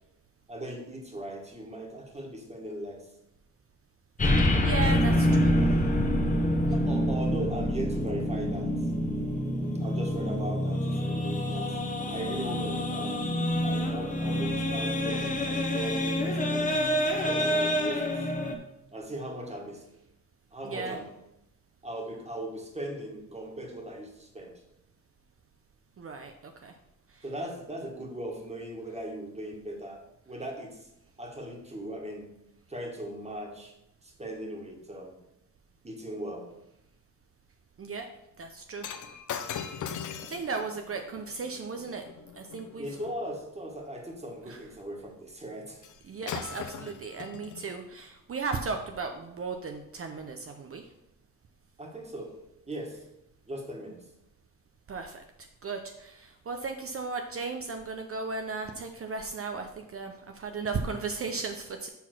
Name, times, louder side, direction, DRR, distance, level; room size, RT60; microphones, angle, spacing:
voice 1, 0.5-3.1 6.7-8.7 9.8-11.8 12.1-13.2 13.6-16.8 17.2-18.3 18.9-19.8 20.5-21.0 21.8-24.6 27.2-30.9 31.2-32.3 32.7-33.7 34.0-35.2 35.8-36.5 42.8-45.9 51.8-52.4 52.7-53.0 53.5-54.0, right 1 dB, 20° right, 1 dB, 1.8 m, -38 dB
sound 1, 4.2-18.5, equal, 25° left, 1.2 m, -27 dB
voice 2, 4.2-5.6 6.7-6.8 20.6-21.0 26.0-26.3 26.6-26.7 27.1-27.3 37.8-38.1 38.4-38.9 39.4-39.8 40.3-42.0 42.4-43.0 44.5-44.8 46.0-50.8 54.9-55.2 55.6-61.9, right 4 dB, 45° right, 5 dB, 0.7 m, -36 dB
Shatter, 38.8-43.2 45.8-46.0 46.3-47.8 48.5-48.7, left 8 dB, 65° left, 0.7 m, -40 dB
7.0 x 4.0 x 6.1 m, 0.85 s
cardioid pair, 90°, 32 cm